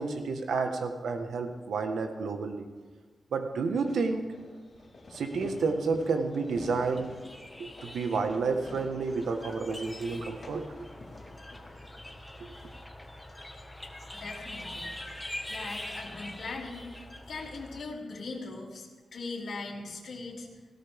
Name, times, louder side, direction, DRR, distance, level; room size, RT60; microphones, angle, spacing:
voice 1, 0.0-2.7 3.3-4.3 5.1-7.1 7.6-10.7, right 4 dB, 90° right, 5 dB, 1.6 m, -30 dB
Fireworks, 3.8-12.8, left 2 dB, 45° left, 4.0 m, -49 dB
sound 1, 6.7-17.8, left 1 dB, 10° left, 1.7 m, -44 dB
voice 2, 14.1-14.9 15.5-16.9 17.3-20.5, left 3 dB, 60° left, -4 dB, 3.3 m, -40 dB
18.5 x 17.0 x 3.6 m, 1.3 s
wide cardioid pair, 110°, 0 cm